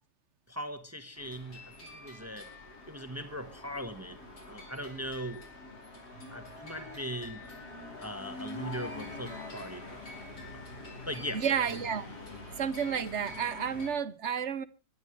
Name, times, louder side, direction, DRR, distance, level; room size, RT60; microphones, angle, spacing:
voice 1, 0.5-2.5 2.9-4.2 4.4-5.4 6.3-7.4 8.0-9.9 10.5-11.4, equal, 10° right, 1.4 m, -40 dB
sound 1, 1.2-13.9, left 2 dB, 75° left, 5.7 m, -45 dB
voice 2, 11.3-12.2 12.6-14.6, right 7 dB, 50° right, 1.1 m, -31 dB
24.5 x 12.0 x 3.2 m
omnidirectional pair, 1.7 m